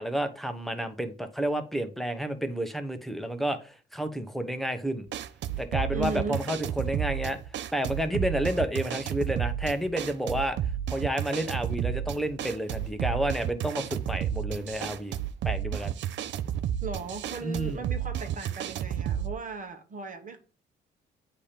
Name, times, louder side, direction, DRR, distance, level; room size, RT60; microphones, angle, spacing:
voice 1, 0.0-5.1 5.6-7.4 7.7-10.6 10.9-15.2 15.4-15.9 17.4-17.8, right 1 dB, ahead, 0.9 m, -30 dB
sound 1, 5.1-19.4, right 10 dB, 65° right, 0.5 m, -32 dB
voice 2, 5.9-6.4 16.8-20.4, right 4 dB, 40° right, 1.1 m, -36 dB
8.3 x 2.9 x 5.1 m
cardioid pair, 90°, 20 cm